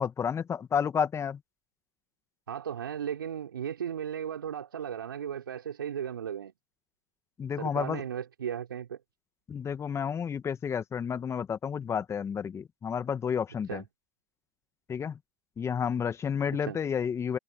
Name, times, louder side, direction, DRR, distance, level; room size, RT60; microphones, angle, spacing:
voice 1, 0.0-1.4 7.4-8.0 9.5-13.8 14.9-15.2 15.6-17.4, left 7 dB, 25° left, 1.7 m, -31 dB
voice 2, 2.5-6.5 7.6-9.0 13.7-13.8 16.7-16.8, right 9 dB, 80° right, 4.5 m, -35 dB
hypercardioid pair, 90°, 12 cm